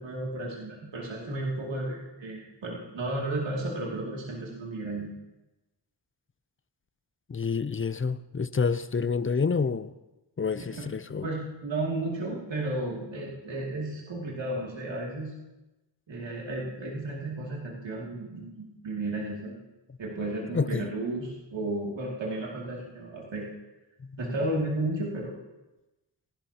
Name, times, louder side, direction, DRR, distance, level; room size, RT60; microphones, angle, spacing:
voice 1, 0.0-5.1 10.7-10.9 11.2-15.3 16.1-19.6 20.0-23.5 24.2-25.4, right 2 dB, 75° right, -4 dB, 2.7 m, -33 dB
voice 2, 7.3-9.9 10.4-11.3 20.5-20.9, left 5 dB, 30° left, 15 dB, 0.5 m, -28 dB
27.0 x 12.0 x 2.9 m, 1.0 s
wide cardioid pair, 75°, 45 cm